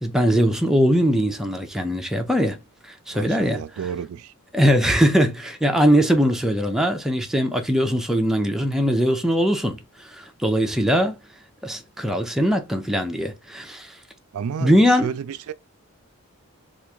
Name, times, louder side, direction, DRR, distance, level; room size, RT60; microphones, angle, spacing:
voice 1, 0.0-2.6 3.1-3.6 4.5-9.8 10.1-11.1 11.6-13.9 14.6-15.1, equal, ahead, 0.5 m, -20 dB
voice 2, 3.1-4.3 14.3-15.5, right 7 dB, 70° right, 0.3 m, -31 dB
3.0 x 2.4 x 3.4 m
head